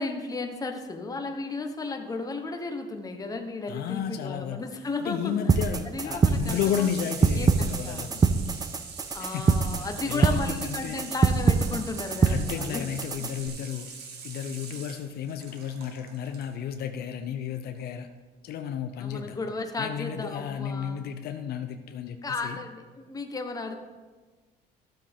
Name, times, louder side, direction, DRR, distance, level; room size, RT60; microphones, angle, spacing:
voice 1, 0.0-5.3 5.9-6.9 7.3-8.1 9.1-12.9 19.0-21.0 22.2-23.8, left 3 dB, 20° left, 5 dB, 1.1 m, -34 dB
voice 2, 3.7-4.7 5.0-8.3 9.2-11.1 12.3-13.9 14.2-18.1 18.4-19.4 19.8-22.6, left 9 dB, 70° left, 7 dB, 0.7 m, -33 dB
Water tap faucet / Sink (filling or washing), 4.6-16.5 17.8-17.9, right 5 dB, 80° right, 1.4 m, -43 dB
sound 1, 5.5-13.5, right 5 dB, 20° right, 0.4 m, -25 dB
12.0 x 7.6 x 3.6 m, 1.3 s
cardioid pair, 110°, 17 cm